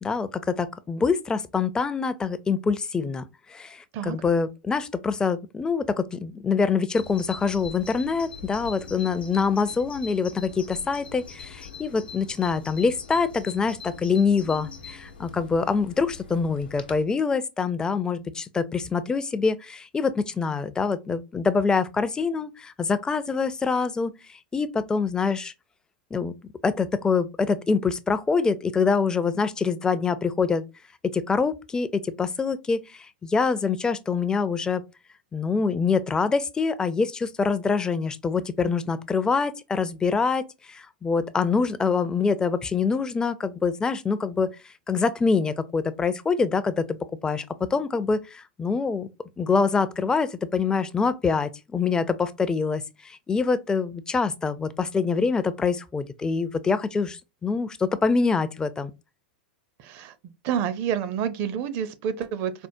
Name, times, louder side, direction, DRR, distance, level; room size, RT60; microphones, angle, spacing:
voice 1, 0.0-3.2 3.5-24.1 24.5-25.5 26.1-26.3 26.6-30.6 31.1-34.8 35.3-44.5 44.9-46.9 47.2-47.4 47.7-49.1 49.4-58.9, left 5 dB, 15° left, 0.4 m, -25 dB
Bird vocalization bird call bird song, 6.9-17.1, left 5 dB, 90° left, 0.8 m, -42 dB
voice 2, 59.8-60.1 60.4-62.5, right 8 dB, 50° right, 0.5 m, -28 dB
4.4 x 2.0 x 2.6 m
hypercardioid pair, 105°, 5 cm